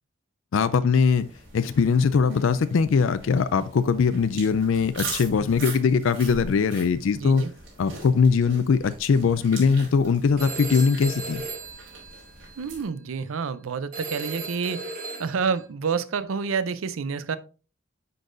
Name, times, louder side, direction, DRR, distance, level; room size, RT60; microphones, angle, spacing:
voice 1, 0.5-1.3 1.5-7.4 7.8-11.4, left 5 dB, 80° left, 0.4 m, -21 dB
sound 1, 1.0-12.8, right 3 dB, 70° right, 3.0 m, -41 dB
voice 2, 7.1-7.5 12.6-14.9 15.2-17.4, right 5 dB, 90° right, 0.5 m, -28 dB
Telephone, 10.4-12.7 13.9-15.6, right 3 dB, 45° right, 2.1 m, -36 dB
10.0 x 4.0 x 2.5 m
head